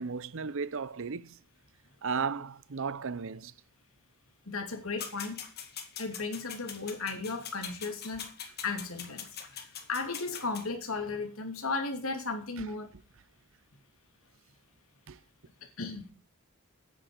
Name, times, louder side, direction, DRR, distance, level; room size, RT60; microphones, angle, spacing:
voice 1, 0.0-1.4 2.0-3.5 12.6-12.7 15.1-15.2, right 5 dB, 70° right, 0.7 m, -35 dB
voice 2, 4.5-5.4 6.0-12.9 15.8-16.1, left 3 dB, 80° left, 2.8 m, -35 dB
sound 1, 5.0-10.7, left 7 dB, 50° left, 2.2 m, -43 dB
9.6 x 9.2 x 8.1 m
head